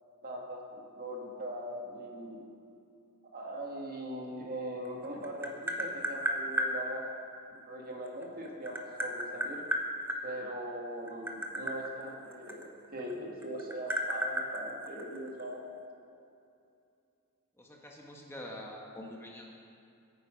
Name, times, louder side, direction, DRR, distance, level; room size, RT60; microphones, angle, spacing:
voice 1, 0.2-2.4 3.3-7.0 7.5-9.6 10.2-12.6 12.9-15.6, right 1 dB, 40° right, -1 dB, 2.1 m, -40 dB
Tap, 4.9-6.7 8.1-10.2 11.0-13.1 13.4-15.4, equal, 10° right, 1.1 m, -33 dB
voice 2, 17.6-19.5, left 1 dB, 10° left, -1 dB, 1.4 m, -45 dB
22.0 x 9.4 x 5.3 m, 2.6 s
head